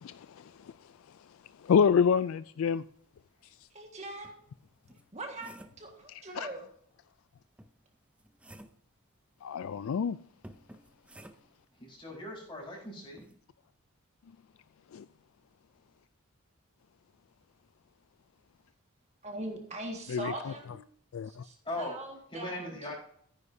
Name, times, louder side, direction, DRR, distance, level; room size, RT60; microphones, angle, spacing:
voice 1, 0.0-0.7 1.6-2.8 6.3-6.5 9.4-10.2 14.9-15.1 20.1-20.5 21.1-21.4, left 6 dB, 65° left, 0.3 m, -28 dB
sound 1, 3.6-3.7 4.2-5.9 7.6-8.9 10.4-11.7 13.2-13.4, right 1 dB, 5° right, 0.5 m, -53 dB
voice 2, 3.7-4.4 5.1-6.7 19.2-20.8 21.2-22.9, right 2 dB, 30° right, 1.7 m, -41 dB
voice 3, 11.8-13.3 21.6-22.0 22.3-22.9, left 1 dB, 25° left, 4.3 m, -39 dB
14.0 x 10.0 x 2.7 m
head